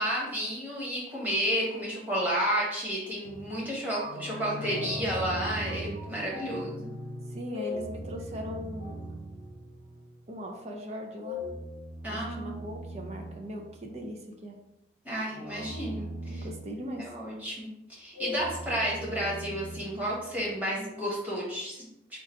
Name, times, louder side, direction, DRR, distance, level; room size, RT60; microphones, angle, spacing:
voice 1, 0.0-6.8 12.0-12.5 15.0-16.5 17.0-21.9, equal, 10° right, -6 dB, 1.2 m, -31 dB
sound 1, 3.2-10.2 11.1-14.2 15.2-17.3 18.1-20.6, equal, 55° right, 1.4 m, -40 dB
voice 2, 7.3-9.0 10.3-11.4 12.1-14.6 16.3-17.1, equal, 35° right, 2 dB, 0.4 m, -39 dB
3.7 x 2.4 x 4.3 m, 0.84 s
head